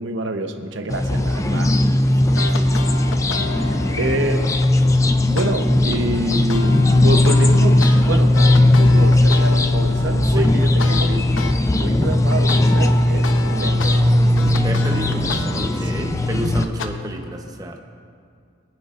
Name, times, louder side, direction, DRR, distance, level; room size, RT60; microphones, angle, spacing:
voice 1, 0.0-1.7 3.6-4.5 5.3-11.3 11.7-14.2 15.9-16.5, right 2 dB, 65° right, 5 dB, 0.9 m, -27 dB
sound 1, 0.9-16.6, left 1 dB, 15° left, 0.5 m, -17 dB
voice 2, 2.2-2.9 10.3-10.5 14.5-17.8, right 1 dB, 20° right, 3 dB, 0.9 m, -31 dB
sound 2, 2.4-4.7 5.4-5.5 5.9-11.6 11.9-16.9, left 3 dB, 80° left, 0.8 m, -32 dB
22.5 x 9.8 x 2.6 m, 2.3 s
head